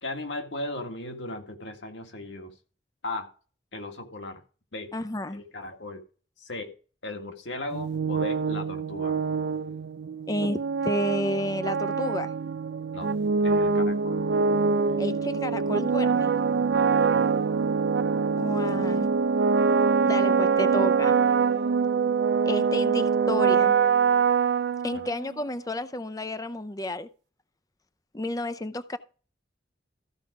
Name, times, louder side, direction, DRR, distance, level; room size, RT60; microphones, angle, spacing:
voice 1, 0.0-2.5 3.0-3.3 3.7-4.4 4.7-4.9 5.3-6.0 6.4-6.7 7.0-9.2 12.9-13.1 13.4-14.2 16.7-17.3 24.9-25.0, left 2 dB, 90° left, 2.0 m, -37 dB
voice 2, 4.9-5.4 10.3-12.3 15.0-16.3 18.4-19.1 20.1-21.2 22.4-23.7 24.8-27.1 28.1-29.0, left 1 dB, 20° left, 0.6 m, -31 dB
sound 1, 7.7-25.4, right 5 dB, 70° right, 0.4 m, -24 dB
14.0 x 4.9 x 4.7 m
head